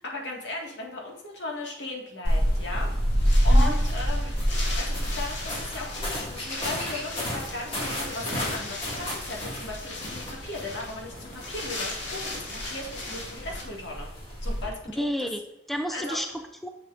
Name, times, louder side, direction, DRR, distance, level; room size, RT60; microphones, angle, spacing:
voice 1, 0.1-2.9 3.4-14.1 14.4-15.3 15.9-16.2, left 2 dB, 70° left, -1 dB, 1.8 m, -37 dB
sound 1, 2.2-14.7, equal, 30° left, 2.0 m, -28 dB
Wind, 2.4-13.6, left 2 dB, 90° left, 2.0 m, -39 dB
voice 2, 15.0-16.7, equal, ahead, 5 dB, 0.4 m, -31 dB
6.9 x 6.5 x 2.5 m, 0.94 s
head